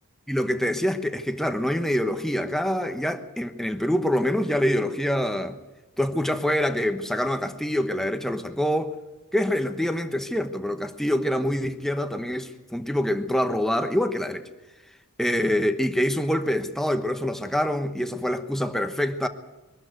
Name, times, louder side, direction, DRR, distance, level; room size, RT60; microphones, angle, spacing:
voice 1, 0.3-5.6 6.0-9.0 9.3-14.5 15.2-19.3, equal, ahead, 1.1 m, -25 dB
22.5 x 13.0 x 9.3 m
head